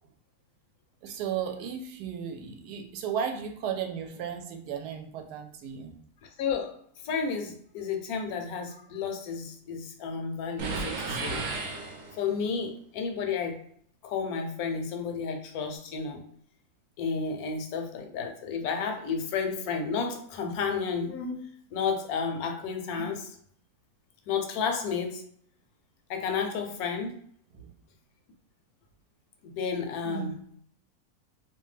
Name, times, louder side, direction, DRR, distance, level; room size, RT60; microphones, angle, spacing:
voice 1, 1.0-5.9 27.5-27.7 30.0-30.4, right 8 dB, 85° right, 4 dB, 1.1 m, -35 dB
voice 2, 6.2-6.8 7.0-11.4 12.1-13.6 14.0-16.2 17.0-23.4 24.3-25.2 26.1-27.2 29.4-30.4, left 5 dB, 75° left, 4 dB, 1.0 m, -32 dB
sound 1, 10.6-12.4, right 3 dB, 65° right, 0.9 m, -34 dB
2.7 x 2.2 x 3.2 m, 0.64 s
omnidirectional pair, 1.7 m